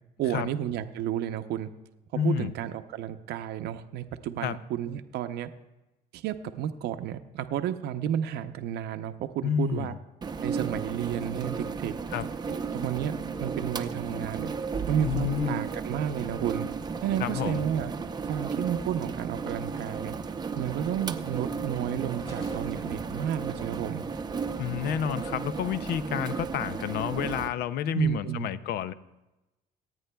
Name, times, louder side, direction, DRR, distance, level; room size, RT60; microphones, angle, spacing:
voice 1, 0.2-1.7 2.1-5.5 6.1-9.9 10.4-11.9 12.7-14.5 14.9-16.7 17.0-17.9 18.2-20.2 20.6-24.0 27.9-28.5, right 10 dB, 75° right, 9 dB, 0.6 m, -31 dB
voice 2, 2.1-2.5 4.4-4.6 9.4-9.9 12.1-12.3 15.0-15.6 17.2-17.6 24.6-28.9, left 8 dB, 75° left, 15 dB, 0.5 m, -30 dB
sound 1, 10.2-27.5, right 5 dB, 25° right, 0.6 m, -34 dB
sound 2, 22.1-25.0, left 1 dB, 35° left, 2.3 m, -51 dB
26.0 x 9.1 x 2.2 m, 1.0 s
cardioid pair, 110°, 17 cm